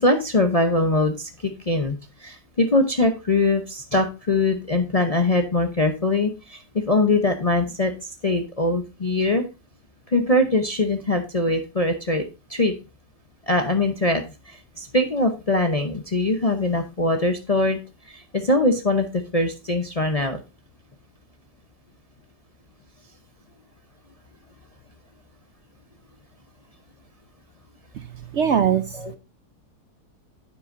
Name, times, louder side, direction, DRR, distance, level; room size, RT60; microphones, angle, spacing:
voice 1, 0.0-9.4 10.1-12.2 12.5-12.7 13.5-17.8 18.1-20.4 29.0-29.1, left 2 dB, 35° left, 5 dB, 0.6 m, -22 dB
voice 2, 27.9-29.2, right 8 dB, 60° right, 11 dB, 0.8 m, -23 dB
9.6 x 8.5 x 2.6 m, 0.29 s
omnidirectional pair, 1.7 m